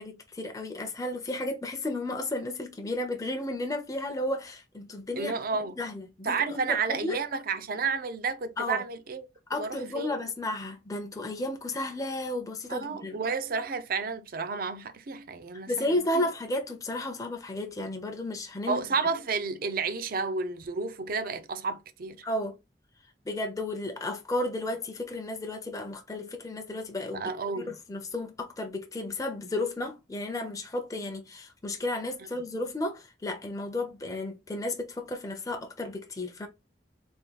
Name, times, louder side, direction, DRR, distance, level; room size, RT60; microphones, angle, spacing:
voice 1, 0.0-7.2 8.6-8.8 9.5-13.2 15.7-18.8 22.2-22.6 23.3-27.2 27.7-36.5, left 1 dB, 20° left, 0.5 m, -33 dB
voice 2, 5.2-5.7 6.2-9.3 9.6-10.1 12.7-16.3 18.7-22.2 27.1-27.8, right 4 dB, 55° right, 0.5 m, -31 dB
3.5 x 2.3 x 4.0 m
head